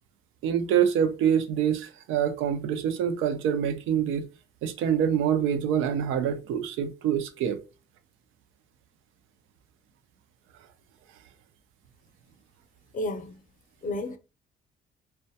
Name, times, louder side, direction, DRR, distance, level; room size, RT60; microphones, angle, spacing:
voice 1, 0.4-4.3 4.6-7.6, right 8 dB, 90° right, 0.4 m, -25 dB
voice 2, 12.9-13.4 13.8-14.2, left 1 dB, 40° left, 0.5 m, -31 dB
2.2 x 2.1 x 2.7 m
cardioid pair, 90°, 20 cm